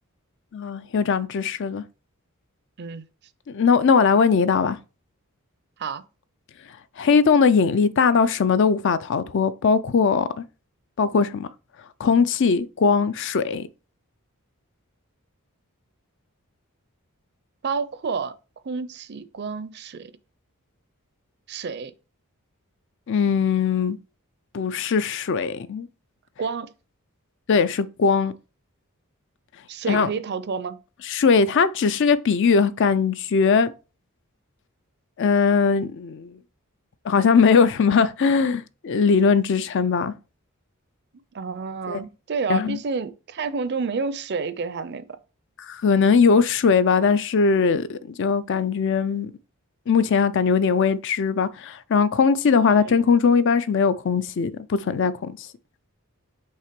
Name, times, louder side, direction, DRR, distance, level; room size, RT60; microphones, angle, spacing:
voice 1, 0.5-1.8 3.5-4.8 7.0-10.4 11.0-11.5 12.0-13.7 23.1-24.0 24.5-25.9 27.5-28.3 29.9-30.1 31.1-33.7 35.2-36.4 37.0-40.1 41.9-42.0 42.5-42.8 45.6-49.3 49.9-55.4, left 5 dB, 55° left, 0.4 m, -20 dB
voice 2, 17.6-18.3 18.6-20.1 21.5-21.9 26.4-26.7 29.7-30.8 41.3-45.2 52.8-52.9, right 5 dB, 50° right, 0.5 m, -29 dB
5.6 x 3.3 x 5.1 m
head